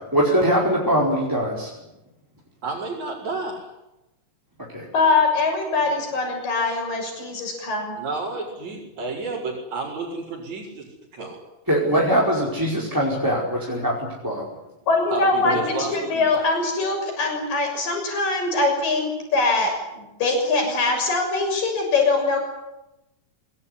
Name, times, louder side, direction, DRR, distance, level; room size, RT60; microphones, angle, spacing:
voice 1, 0.1-1.7 4.7-4.9 11.7-14.4 15.4-15.6, equal, 5° right, -3 dB, 4.9 m, -22 dB
voice 2, 2.6-3.6 8.0-10.8 11.1-11.4 15.1-16.3, right 3 dB, 50° right, -4 dB, 6.4 m, -31 dB
voice 3, 4.9-8.0 14.9-22.4, left 3 dB, 65° left, 3 dB, 8.3 m, -22 dB
26.0 x 20.5 x 10.0 m, 0.95 s
omnidirectional pair, 4.3 m